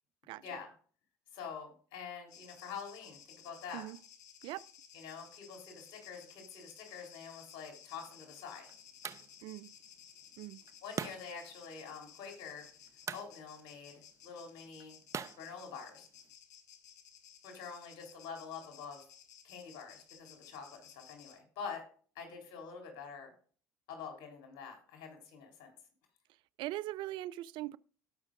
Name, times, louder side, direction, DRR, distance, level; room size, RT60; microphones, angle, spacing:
voice 1, 0.3-0.7 1.3-3.8 4.9-8.7 10.8-12.7 13.1-15.0 15.4-16.1 17.4-19.0 19.4-21.8 22.2-23.3 23.9-25.7, left 6 dB, 65° left, 3.8 m, -46 dB
sound 1, 2.3-21.4, left 8 dB, 80° left, 1.9 m, -57 dB
sound 2, 7.8-16.3, right 7 dB, 35° right, 0.8 m, -47 dB
voice 2, 26.6-27.8, right 16 dB, 60° right, 0.4 m, -40 dB
18.5 x 6.1 x 2.6 m
hypercardioid pair, 65°, 9 cm